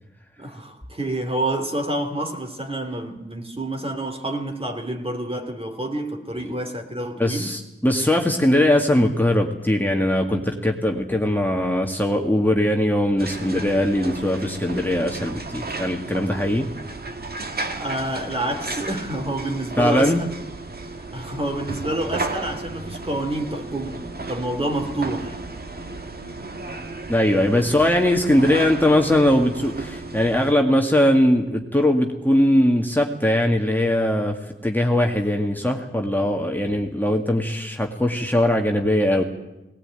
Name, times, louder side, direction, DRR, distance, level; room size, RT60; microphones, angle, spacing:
voice 1, 0.4-7.5 17.7-20.4 21.1-25.4 27.6-27.7, right 1 dB, 30° right, 3.0 m, -28 dB
voice 2, 7.2-16.7 19.8-20.2 27.1-39.2, left 1 dB, 10° left, 2.0 m, -20 dB
sound 1, 13.2-30.5, right 3 dB, 50° right, 1.8 m, -34 dB
19.0 x 18.5 x 9.1 m
wide cardioid pair, 75°, 21 cm